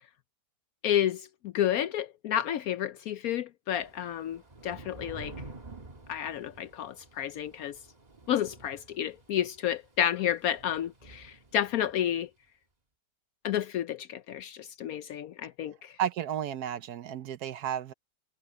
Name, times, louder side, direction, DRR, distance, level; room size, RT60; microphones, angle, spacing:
voice 1, 0.8-5.4 6.1-7.8 8.3-12.3 13.4-15.9, left 10 dB, 70° left, 0.9 m, -31 dB
Thunder / Rain, 3.7-12.1, right 2 dB, 25° right, 1.7 m, -49 dB
voice 2, 16.0-17.9, right 10 dB, 70° right, 1.2 m, -32 dB
omnidirectional pair, 1.9 m